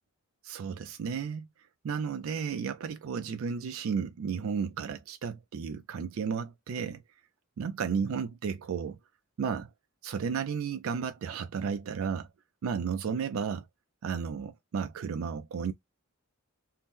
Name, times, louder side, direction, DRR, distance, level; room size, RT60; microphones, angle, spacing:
voice 1, 0.4-1.5 1.8-7.0 7.6-9.0 9.4-9.7 10.0-12.3 12.6-13.6 14.0-15.7, right 6 dB, 75° right, 0.4 m, -33 dB
2.8 x 2.0 x 3.4 m
head